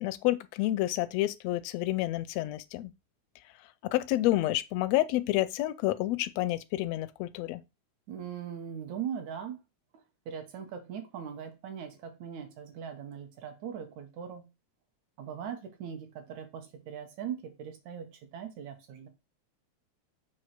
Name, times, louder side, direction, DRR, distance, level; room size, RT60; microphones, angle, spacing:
voice 1, 0.0-2.9 3.9-7.6, left 16 dB, 80° left, 1.5 m, -29 dB
voice 2, 8.1-9.6 9.9-14.5 15.2-19.1, right 8 dB, 75° right, 2.5 m, -40 dB
7.4 x 3.1 x 5.9 m
omnidirectional pair, 3.4 m